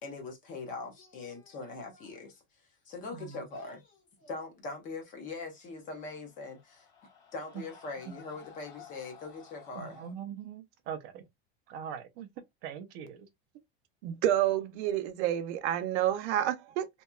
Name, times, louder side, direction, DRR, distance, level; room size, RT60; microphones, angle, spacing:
voice 1, 0.0-2.4 2.9-6.9 7.3-10.1, left 3 dB, 25° left, 0.5 m, -42 dB
Screaming, 5.7-10.2, left 7 dB, 40° left, 1.2 m, -55 dB
voice 2, 9.8-11.2 11.7-12.3 12.6-13.3, right 8 dB, 30° right, 0.4 m, -42 dB
voice 3, 14.0-16.9, right 12 dB, 85° right, 0.6 m, -29 dB
2.8 x 2.2 x 2.2 m
cardioid pair, 180°, 33 cm